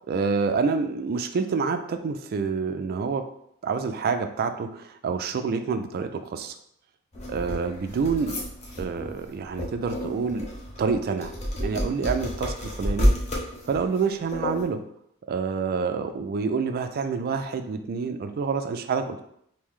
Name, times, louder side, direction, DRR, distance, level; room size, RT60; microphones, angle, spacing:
voice 1, 0.1-3.2 3.6-6.5 7.3-8.4 8.8-10.5 10.8-11.3 11.6-13.1 13.7-14.8 15.3-19.2, right 5 dB, 45° right, 8 dB, 0.3 m, -27 dB
sound 1, 7.1-14.7, equal, 30° left, 0.7 m, -29 dB
3.1 x 2.6 x 3.7 m, 0.72 s
head